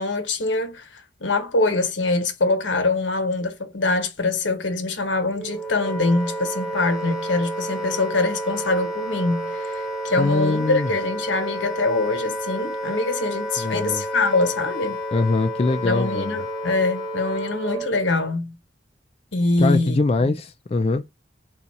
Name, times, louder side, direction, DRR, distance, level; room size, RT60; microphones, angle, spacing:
voice 1, 0.0-15.0 15.8-18.5 19.3-20.4, left 2 dB, 90° left, 1.1 m, -24 dB
Wind instrument woodwind instrument, 5.3-18.0, right 1 dB, 5° right, 1.0 m, -30 dB
voice 2, 10.2-10.9 13.6-14.0 15.1-16.4 19.6-21.0, left 3 dB, 35° left, 0.4 m, -22 dB
4.0 x 2.4 x 4.2 m
head